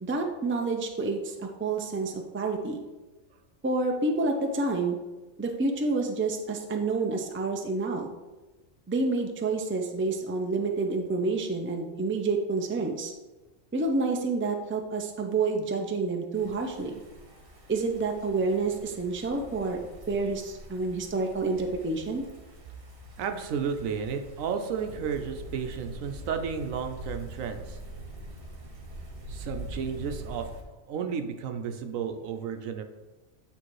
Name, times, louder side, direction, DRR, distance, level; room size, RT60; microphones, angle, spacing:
voice 1, 0.0-2.8 3.6-5.0 5.4-8.1 8.9-13.1 13.7-17.0 17.7-19.8 20.1-22.2, right 3 dB, 15° right, 3 dB, 0.4 m, -28 dB
sound 1, 16.3-30.6, right 1 dB, 45° right, 1.3 m, -44 dB
voice 2, 23.2-27.8 29.3-32.8, right 6 dB, 85° right, 6 dB, 1.1 m, -33 dB
8.8 x 3.3 x 4.7 m, 1.1 s
omnidirectional pair, 1.3 m